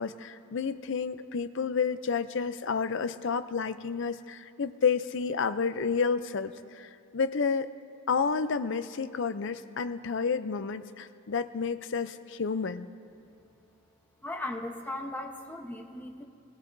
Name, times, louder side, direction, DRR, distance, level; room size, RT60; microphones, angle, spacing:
voice 1, 0.0-7.7 8.1-12.9, left 5 dB, 55° left, 12 dB, 0.5 m, -30 dB
voice 2, 14.2-16.2, left 1 dB, 10° left, 1 dB, 0.9 m, -37 dB
21.5 x 15.5 x 2.6 m, 2.6 s
head